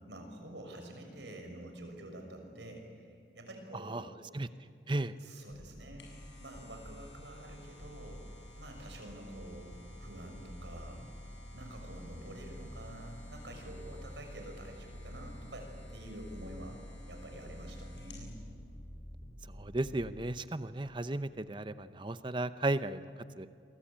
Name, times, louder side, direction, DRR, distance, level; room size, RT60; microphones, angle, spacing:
voice 1, 0.1-4.1 5.2-6.1 6.4-9.7 10.0-11.0 11.5-16.8 17.1-18.4, right 1 dB, 85° right, 4 dB, 6.2 m, -48 dB
voice 2, 3.7-4.1 4.3-4.5 4.9-5.1 19.5-23.1 23.4-23.5, right 2 dB, 25° right, 12 dB, 0.8 m, -35 dB
sound 1, 5.5-20.1, equal, 40° left, 3.4 m, -49 dB
sound 2, 5.7-18.3 18.7-18.8, left 2 dB, 85° left, 7.8 m, -59 dB
29.0 x 23.0 x 8.8 m, 2.5 s
head